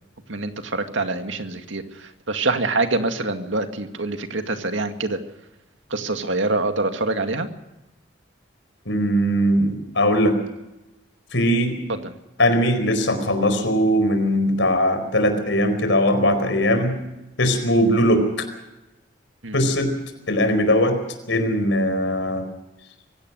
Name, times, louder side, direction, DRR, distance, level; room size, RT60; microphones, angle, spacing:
voice 1, 0.3-1.8 2.3-5.2 5.9-7.5 11.9-12.1 19.4-19.6, right 3 dB, 85° right, 6 dB, 2.2 m, -25 dB
voice 2, 8.9-10.4 11.3-11.8 12.4-17.0 17.4-18.4 19.5-19.9 20.3-21.0 21.3-22.5, equal, 80° left, 8 dB, 4.7 m, -20 dB
24.5 x 17.0 x 6.4 m, 0.95 s
head